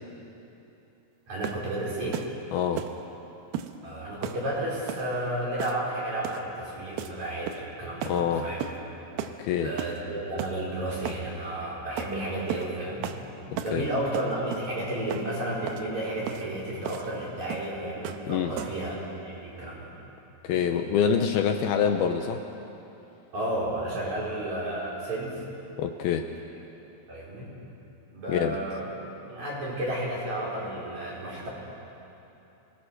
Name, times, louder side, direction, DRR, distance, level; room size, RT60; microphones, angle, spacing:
voice 1, 1.3-2.2 3.8-8.6 9.6-19.0 19.2-19.9 20.5-20.6 23.3-25.4 27.1-27.5 28.1-28.8 29.3-31.5, right 1 dB, 45° right, -5 dB, 6.2 m, -32 dB
sound 1, 1.4-1.7 2.1-2.3 2.8-3.0 3.5-3.7 4.2-4.4 4.9-5.1 5.6-5.9 6.2-6.5 7.0-7.2 7.5-7.7 8.0-8.2 8.6-8.8 9.2-9.4 9.8-10.0 10.4-10.6 11.1-11.2 12.0-12.1 12.5-12.7 13.0-13.2 13.6-13.8 14.1-14.7 15.1-15.3 15.7-15.8 16.3-16.4 16.9-17.1 17.5-17.7 18.1-18.3 18.6-18.9, right 10 dB, 75° right, 2.6 m, -35 dB
voice 2, 2.5-2.9 8.1-8.5 9.4-9.7 13.5-13.9 18.3-18.5 20.4-22.4 25.8-26.3 28.3-28.6, left 7 dB, 75° left, 5 dB, 2.5 m, -26 dB
27.5 x 20.0 x 6.6 m, 3.0 s
omnidirectional pair, 4.8 m